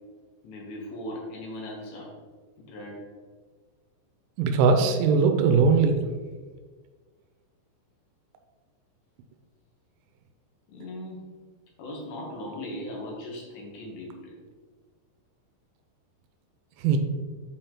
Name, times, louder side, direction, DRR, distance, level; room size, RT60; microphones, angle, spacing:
voice 1, 0.4-2.1 2.6-3.0 10.7-11.3 11.8-14.4, left 1 dB, 80° left, -2 dB, 1.7 m, -38 dB
voice 2, 4.4-6.0 16.8-17.0, right 5 dB, 90° right, 6 dB, 3.2 m, -20 dB
8.3 x 4.5 x 3.8 m, 1.5 s
omnidirectional pair, 5.5 m